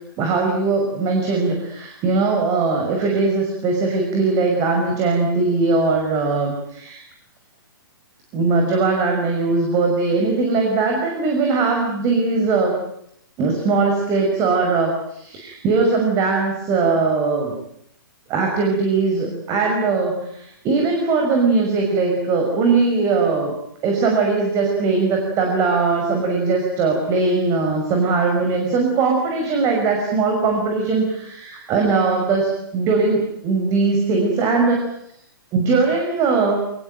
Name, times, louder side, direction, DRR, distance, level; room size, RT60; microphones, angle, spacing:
voice 1, 0.2-7.0 8.3-12.8 13.4-17.5 18.3-23.5 23.8-34.9 35.5-36.6, right 4 dB, 25° right, 2 dB, 5.9 m, -20 dB
24.0 x 21.5 x 9.2 m, 0.72 s
hypercardioid pair, 140°, 12 cm